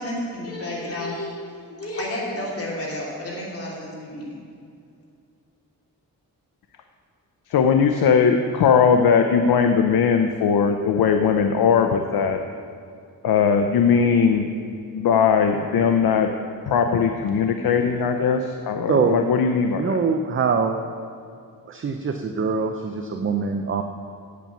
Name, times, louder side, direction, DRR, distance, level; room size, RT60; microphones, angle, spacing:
voice 1, 0.0-1.4 1.7-4.4, left 1 dB, 40° left, -5 dB, 3.2 m, -31 dB
voice 2, 7.5-12.4 13.2-14.5 14.9-16.3 16.7-20.0, left 6 dB, 75° left, 5 dB, 0.7 m, -19 dB
voice 3, 18.9-19.2 19.8-20.7 21.7-23.8, right 5 dB, 35° right, 5 dB, 0.5 m, -23 dB
8.8 x 8.3 x 7.1 m, 2.4 s
wide cardioid pair, 130°, 37 cm